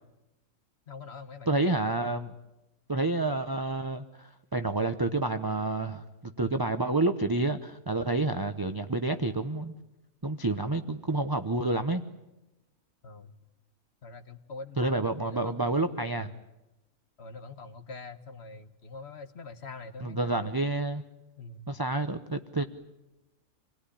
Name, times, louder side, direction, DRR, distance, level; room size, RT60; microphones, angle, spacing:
voice 1, 0.9-1.8 13.0-13.4 14.0-16.0 17.2-20.6 21.4-21.7, left 3 dB, 50° left, 10 dB, 1.5 m, -44 dB
voice 2, 1.5-2.3 2.9-6.0 6.4-9.7 10.2-12.0 14.8-16.3 20.0-21.0 21.7-22.6, right 2 dB, 20° right, 7 dB, 0.7 m, -29 dB
27.0 x 19.0 x 10.0 m, 0.99 s
omnidirectional pair, 1.5 m